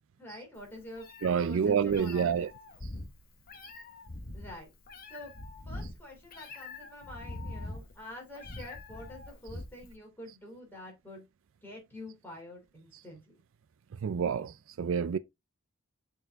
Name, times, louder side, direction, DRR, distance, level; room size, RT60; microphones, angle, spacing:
voice 1, 0.2-1.1 1.5-2.5 4.3-4.7 5.1-5.3 5.7-11.2 11.6-13.3, left 1 dB, 10° left, 3.1 m, -47 dB
Meow, 0.6-9.9, left 2 dB, 40° left, 0.9 m, -44 dB
voice 2, 1.2-2.5 14.0-14.5 14.8-15.2, right 7 dB, 60° right, 0.4 m, -27 dB
6.8 x 4.1 x 3.5 m
head